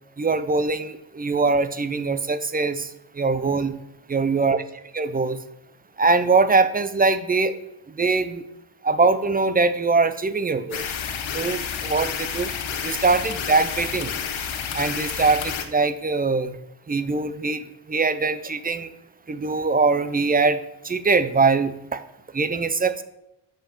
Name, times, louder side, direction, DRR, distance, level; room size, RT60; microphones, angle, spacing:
voice 1, 0.2-2.9 3.2-3.8 4.1-4.6 4.9-5.4 6.0-7.5 8.0-8.4 8.8-10.8 11.3-12.5 12.8-14.1 14.7-16.6 16.9-17.6 17.9-18.9 19.3-20.6 20.8-22.0 22.3-23.0, right 4 dB, 20° right, 12 dB, 0.4 m, -22 dB
sound 1, 10.7-15.6, left 7 dB, 80° left, 1.1 m, -30 dB
7.6 x 5.0 x 5.2 m, 0.86 s
wide cardioid pair, 115°, 46 cm